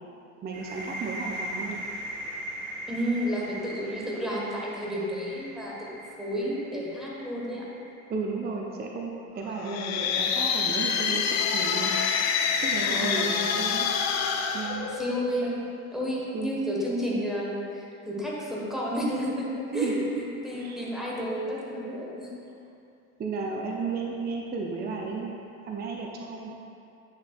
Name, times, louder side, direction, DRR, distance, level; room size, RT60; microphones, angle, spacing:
voice 1, 0.4-1.8 8.1-11.9 12.6-13.9 14.5-14.9 15.4-15.6 16.3-16.5 19.7-20.1 20.5-20.9 23.2-25.3 25.6-26.5, right 4 dB, 20° right, 0 dB, 0.6 m, -33 dB
sound 1, 0.5-8.1, right 1 dB, 50° right, 1.6 m, -39 dB
voice 2, 2.9-7.7 9.6-9.9 12.8-13.4 14.9-19.5 19.7-19.9 20.4-22.3, equal, ahead, -5 dB, 1.5 m, -31 dB
sound 2, 9.6-15.5, left 6 dB, 35° left, 0.6 m, -27 dB
8.9 x 6.6 x 2.5 m, 2.6 s
figure-of-eight pair, 60°, 44 cm